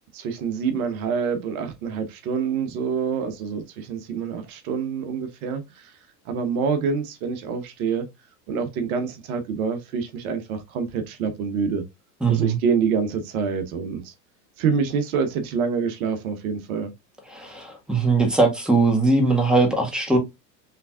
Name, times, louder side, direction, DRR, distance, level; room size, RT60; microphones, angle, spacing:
voice 1, 0.1-5.9 6.3-8.1 8.5-11.8 12.3-14.1 14.6-16.9, right 6 dB, 60° right, 1.2 m, -26 dB
voice 2, 12.2-12.6 17.3-20.2, right 3 dB, ahead, 1.7 m, -20 dB
5.7 x 3.4 x 2.4 m
hypercardioid pair, 90°, 49 cm